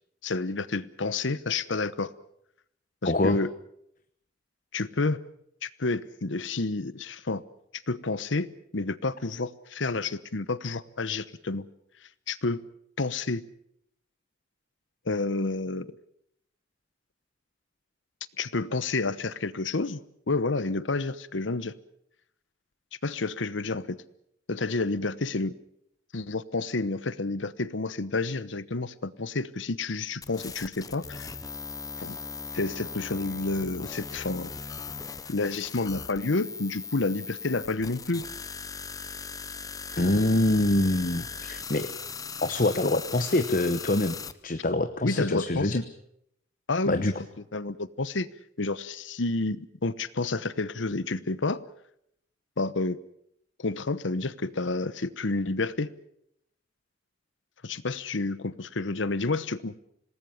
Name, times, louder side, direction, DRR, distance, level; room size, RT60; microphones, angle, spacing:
voice 1, 0.2-2.1 3.0-3.5 4.7-5.2 5.6-7.4 7.9-11.7 12.3-12.6 13.0-13.4 15.1-15.9 18.4-20.0 20.3-21.7 23.0-24.0 24.5-25.5 26.1-31.3 32.0-32.2 32.5-34.5 35.3-38.3 45.0-45.8 46.7-47.1 47.5-48.3 48.6-51.6 52.6-53.0 53.6-55.9 57.6-59.8, left 3 dB, 85° left, 17 dB, 1.0 m, -29 dB
voice 2, 3.0-3.4 40.0-41.9 42.4-45.8 46.8-47.1, left 2 dB, 45° left, 10 dB, 1.0 m, -25 dB
sound 1, 30.2-44.3, left 5 dB, 20° left, 0.9 m, -39 dB
26.5 x 19.5 x 7.2 m, 0.73 s
head